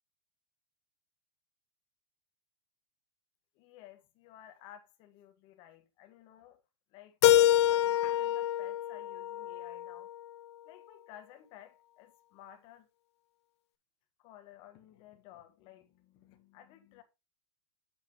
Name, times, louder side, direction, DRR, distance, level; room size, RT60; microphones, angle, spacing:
voice 1, 3.6-6.6 6.9-10.1 10.6-12.9 14.2-17.0, left 12 dB, 30° left, 1.5 m, -55 dB
Keyboard (musical), 7.2-10.1, left 12 dB, 60° left, 0.6 m, -26 dB
8.0 x 7.7 x 2.9 m
supercardioid pair, 160°, 16 cm